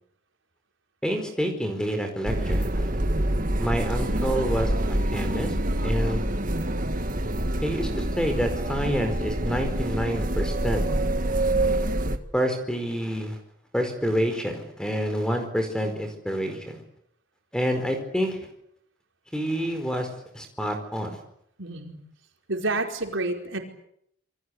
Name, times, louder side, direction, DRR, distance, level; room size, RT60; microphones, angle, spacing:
voice 1, 1.0-2.9 3.6-5.5 5.8-6.2 7.6-10.9 12.3-13.4 13.7-16.8 17.5-18.5 19.3-21.2, equal, 5° left, 6 dB, 4.7 m, -28 dB
sound 1, 2.3-12.2, right 1 dB, 45° right, 1.8 m, -26 dB
voice 2, 21.6-22.0 22.5-23.6, right 2 dB, 80° right, 3 dB, 4.9 m, -29 dB
28.0 x 23.0 x 8.3 m, 0.72 s
head